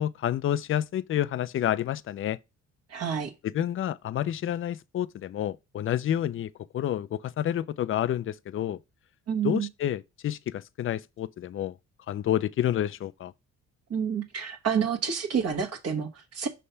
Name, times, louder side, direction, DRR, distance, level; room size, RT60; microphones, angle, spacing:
voice 1, 0.0-2.4 3.4-8.8 9.4-11.7 12.1-13.3, left 11 dB, 45° left, 0.4 m, -29 dB
voice 2, 2.9-3.3 9.3-9.7 13.9-16.5, right 7 dB, 55° right, 1.2 m, -29 dB
5.6 x 3.3 x 5.5 m
cardioid pair, 90°, 30 cm